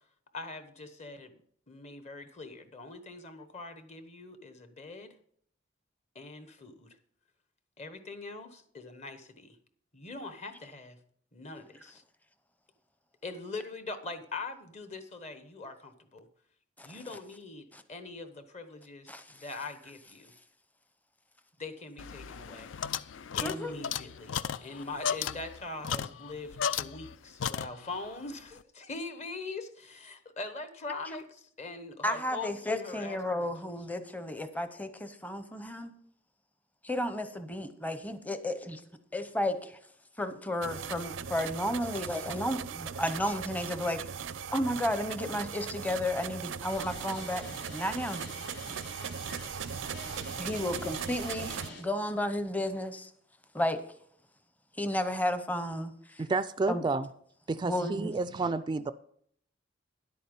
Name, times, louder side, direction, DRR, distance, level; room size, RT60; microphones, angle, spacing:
voice 1, 0.3-1.3 1.7-5.1 6.1-7.0 7.8-9.6 9.9-11.0 11.3-12.0 13.2-16.3 16.8-20.3 21.6-22.7 23.4-33.5, left 3 dB, 40° left, 1.1 m, -42 dB
sound 1, 22.0-27.2 27.4-28.1, left 8 dB, 80° left, 0.4 m, -35 dB
voice 2, 23.4-23.7 32.0-35.9 36.8-38.8 39.1-39.8 40.2-44.0 44.5-48.2 50.4-53.1 53.5-53.8 54.8-56.2 56.7-56.8 57.6-58.1, left 1 dB, 10° left, 0.7 m, -33 dB
sound 2, 40.6-51.7, right 7 dB, 90° right, 0.5 m, -39 dB
sound 3, 46.7-51.8, left 2 dB, 60° left, 3.4 m, -47 dB
voice 3, 56.2-57.1 57.5-58.9, right 3 dB, 25° right, 0.3 m, -30 dB
10.5 x 8.5 x 5.3 m
head